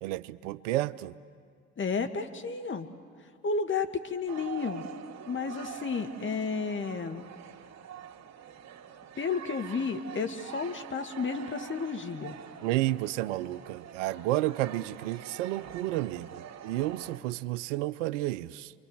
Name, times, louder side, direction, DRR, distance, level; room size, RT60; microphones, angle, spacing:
voice 1, 0.0-1.1 12.6-18.7, right 16 dB, 75° right, 16 dB, 0.7 m, -31 dB
voice 2, 1.8-2.9 3.4-4.9 5.3-7.2 9.2-12.4, left 5 dB, 30° left, 7 dB, 2.1 m, -32 dB
sound 1, 4.3-17.2, right 9 dB, 45° right, 2.5 m, -46 dB
28.5 x 24.0 x 7.9 m, 2.1 s
hypercardioid pair, 60°, 37 cm